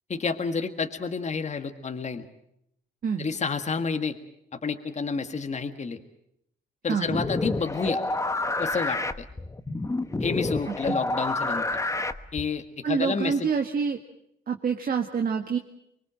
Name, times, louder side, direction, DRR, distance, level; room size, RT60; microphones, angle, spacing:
voice 1, 0.1-2.3 3.2-4.2 4.5-6.0 6.8-8.0 8.6-9.3 10.2-11.7 12.3-13.3, left 5 dB, 35° left, 7 dB, 1.8 m, -29 dB
sound 1, 7.0-12.6, left 2 dB, 15° left, 1.1 m, -29 dB
voice 2, 10.7-11.0 12.8-14.0 14.5-15.6, right 6 dB, 45° right, 4 dB, 1.8 m, -27 dB
24.5 x 22.0 x 7.6 m, 0.76 s
cardioid pair, 90°, 20 cm